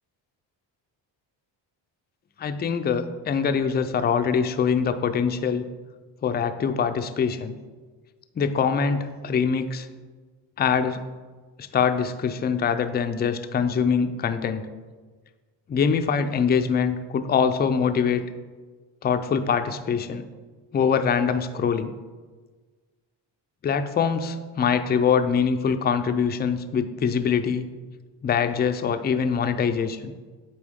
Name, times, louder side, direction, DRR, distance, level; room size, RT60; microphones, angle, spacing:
voice 1, 2.4-5.7 6.2-7.6 8.4-9.9 10.6-11.0 11.6-14.7 15.7-18.2 19.0-20.3 20.7-21.9 23.6-27.7 28.2-30.1, left 6 dB, 25° left, 8 dB, 0.4 m, -23 dB
8.1 x 4.5 x 3.5 m, 1.4 s
cardioid pair, 90°, 47 cm